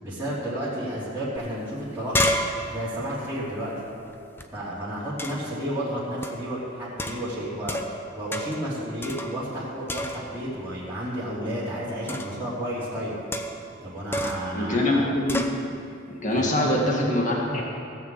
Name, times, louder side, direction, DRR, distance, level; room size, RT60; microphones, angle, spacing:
voice 1, 0.0-2.2 2.7-3.7 4.5-13.2 13.8-15.1 16.3-16.6, equal, 10° right, -11 dB, 3.1 m, -32 dB
sound 1, 1.4-1.5 1.7-4.5 5.2-5.6 6.2-6.5 7.0-8.0 8.3-8.7 9.0-9.6 9.9-10.5 12.1-12.4 13.3-13.7 14.1-14.5 15.3-15.6, left 1 dB, 10° left, 0.6 m, -30 dB
voice 2, 14.5-15.4 16.1-17.6, left 1 dB, 40° left, -2 dB, 1.9 m, -23 dB
16.0 x 5.8 x 7.6 m, 2.5 s
head